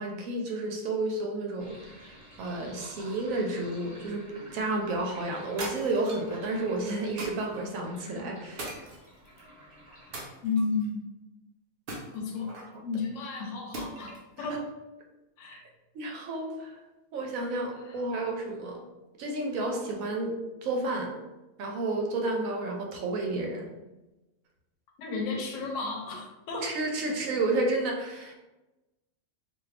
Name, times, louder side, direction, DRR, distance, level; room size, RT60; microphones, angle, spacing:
voice 1, 0.0-8.8 12.7-12.8 14.4-14.5 15.5-15.6 15.9-16.8 17.1-18.9 19.2-21.2 21.6-23.7 26.6-28.4, right 2 dB, 75° right, 2 dB, 1.0 m, -31 dB
Sink (filling or washing), 1.6-10.3, equal, 5° left, 0.9 m, -51 dB
sound 1, 5.6-6.3 7.2-7.6 8.6-9.4 10.1-10.9 11.9-12.7 13.7-14.3, right 2 dB, 55° right, 0.6 m, -39 dB
voice 2, 10.4-11.0 12.1-12.5 12.8-14.1 14.4-14.7 15.4-15.6 17.9-18.0 25.0-26.8, left 4 dB, 70° left, 1 dB, 0.9 m, -32 dB
2.6 x 2.4 x 3.2 m, 1.0 s
omnidirectional pair, 1.4 m